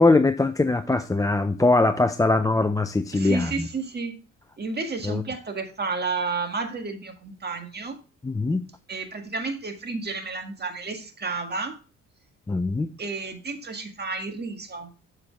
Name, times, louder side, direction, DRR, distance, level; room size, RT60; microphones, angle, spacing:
voice 1, 0.0-3.5 5.0-5.2 8.2-8.6 12.5-12.9, left 2 dB, 10° left, 0.5 m, -21 dB
voice 2, 3.1-4.1 4.6-8.0 8.9-11.8 13.0-14.9, right 4 dB, 35° right, 1.8 m, -31 dB
7.8 x 7.0 x 3.4 m
cardioid pair, 90°, 30 cm